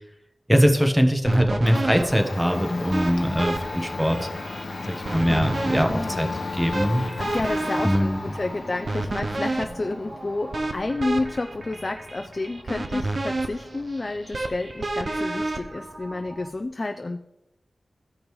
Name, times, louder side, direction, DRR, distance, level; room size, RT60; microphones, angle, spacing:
voice 1, 0.5-4.2 4.9-6.3 6.5-7.0 7.8-8.2, equal, 10° right, 5 dB, 1.1 m, -22 dB
Domestic sounds home sounds, 0.8-16.7, left 3 dB, 75° left, 0.9 m, -36 dB
sound 1, 1.3-16.5, right 2 dB, 55° right, 0.7 m, -31 dB
voice 2, 2.5-2.9 3.3-3.5 5.8-6.3 7.2-17.2, left 2 dB, 40° left, 6 dB, 0.5 m, -30 dB
14.5 x 5.2 x 3.1 m, 0.91 s
wide cardioid pair, 60°, 0 cm